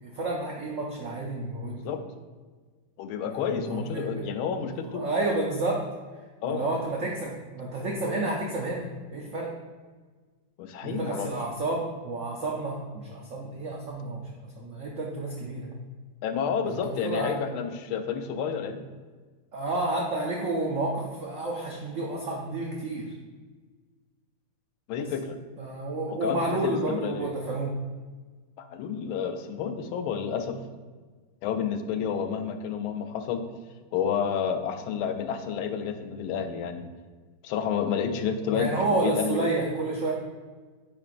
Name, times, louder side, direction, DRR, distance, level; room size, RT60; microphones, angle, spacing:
voice 1, 0.0-1.8 3.3-3.4 3.6-4.2 4.6-4.7 4.9-5.8 6.5-8.9 9.1-9.5 10.8-14.2 14.6-15.7 16.8-17.4 19.5-23.1 25.0-25.1 25.6-27.8 38.5-40.1, right 2 dB, 85° right, -1 dB, 0.6 m, -30 dB
voice 2, 3.0-5.0 6.4-6.7 10.6-11.3 16.2-18.8 24.9-25.4 26.1-27.3 28.6-30.6 31.4-33.4 33.9-36.9 37.4-39.5, left 7 dB, 85° left, 7 dB, 1.4 m, -30 dB
8.7 x 4.4 x 2.5 m, 1.4 s
omnidirectional pair, 2.3 m